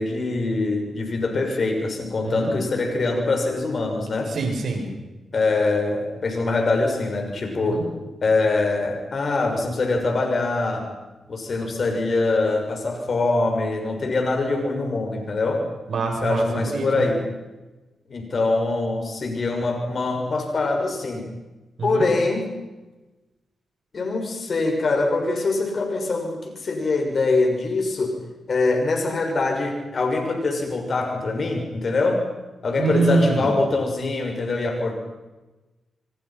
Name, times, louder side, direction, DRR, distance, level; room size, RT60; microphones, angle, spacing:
voice 1, 0.0-4.3 5.3-10.9 11.3-15.7 16.2-17.3 18.1-21.3 21.8-22.5 23.9-28.2 28.5-32.2 32.6-35.0, left 3 dB, 50° left, 4 dB, 6.4 m, -23 dB
voice 2, 2.2-2.5 4.3-4.8 7.7-7.8 15.9-17.0 21.8-22.1 32.8-33.5, right 3 dB, 65° right, 1 dB, 7.7 m, -24 dB
28.0 x 24.5 x 5.9 m, 1.1 s
cardioid pair, 70°, 0 cm